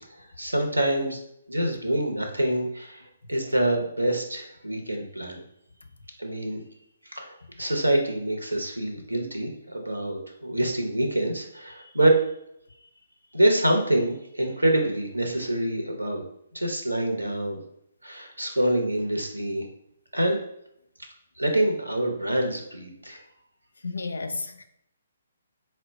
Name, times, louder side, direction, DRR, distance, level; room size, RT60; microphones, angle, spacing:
voice 1, 0.4-1.2 1.5-3.0 3.3-5.4 6.2-6.6 7.1-12.2 13.3-16.2 16.5-17.6 18.0-19.6 20.1-20.4 21.4-23.2, right 1 dB, 85° right, 0.8 m, -26 dB
voice 2, 23.8-24.6, left 3 dB, 70° left, 0.4 m, -32 dB
4.3 x 2.2 x 4.0 m
figure-of-eight pair, 135°, 0 cm